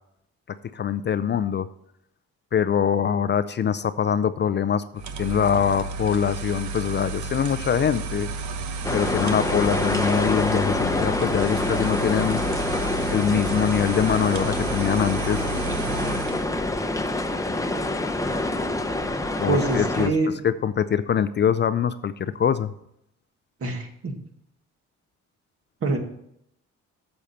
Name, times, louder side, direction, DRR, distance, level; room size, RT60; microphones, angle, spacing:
voice 1, 0.7-1.7 2.5-4.8 5.2-8.3 8.9-12.4 13.1-15.5 19.4-22.7, left 8 dB, 35° left, 13 dB, 0.4 m, -23 dB
sound 1, 5.0-16.5, right 4 dB, 70° right, 1.0 m, -32 dB
sound 2, 8.8-20.1, left 2 dB, 10° left, 0.7 m, -26 dB
voice 2, 19.5-20.3 23.6-24.2 25.8-26.0, right 3 dB, 50° right, 4 dB, 1.8 m, -25 dB
8.5 x 7.1 x 4.2 m, 0.75 s
cardioid pair, 90°, 30 cm